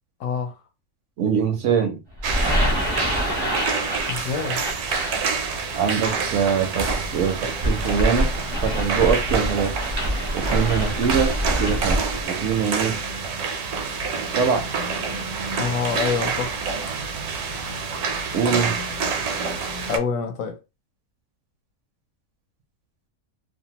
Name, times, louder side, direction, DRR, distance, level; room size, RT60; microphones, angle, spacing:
voice 1, 0.2-0.5 4.1-4.6 15.5-16.6 19.9-20.6, left 6 dB, 65° left, 1.0 m, -26 dB
voice 2, 1.2-2.0 5.7-8.3 8.6-9.7 10.3-13.0 14.3-14.7 18.3-18.8, right 7 dB, 65° right, 0.8 m, -23 dB
sound 1, 2.1-12.2, equal, 25° right, 0.5 m, -26 dB
sound 2, 2.2-20.0, right 5 dB, 80° right, 1.1 m, -28 dB
2.7 x 2.1 x 2.8 m
omnidirectional pair, 1.6 m